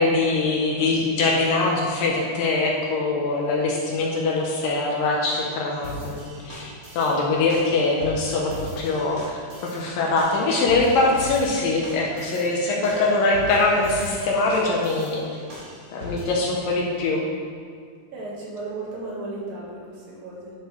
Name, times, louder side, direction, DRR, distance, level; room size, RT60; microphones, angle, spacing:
voice 1, 0.0-15.2 15.9-17.3, left 3 dB, 75° left, -2 dB, 2.3 m, -23 dB
sound 1, 5.8-16.5, left 1 dB, 45° right, 1.2 m, -39 dB
voice 2, 18.1-20.5, right 2 dB, 70° right, -5 dB, 3.3 m, -35 dB
10.5 x 6.9 x 3.2 m, 2.1 s
omnidirectional pair, 4.5 m